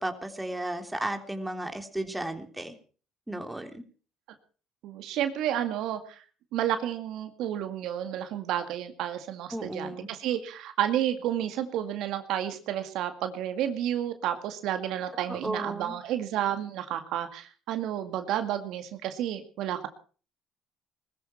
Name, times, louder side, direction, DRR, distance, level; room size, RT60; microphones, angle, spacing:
voice 1, 0.0-2.7 3.3-3.8 9.5-10.1 15.3-16.0, right 1 dB, 10° right, 6 dB, 3.3 m, -34 dB
voice 2, 4.8-6.0 6.5-19.9, right 11 dB, 75° right, 8 dB, 2.1 m, -31 dB
21.0 x 14.0 x 4.5 m, 0.40 s
supercardioid pair, 80°, 0 cm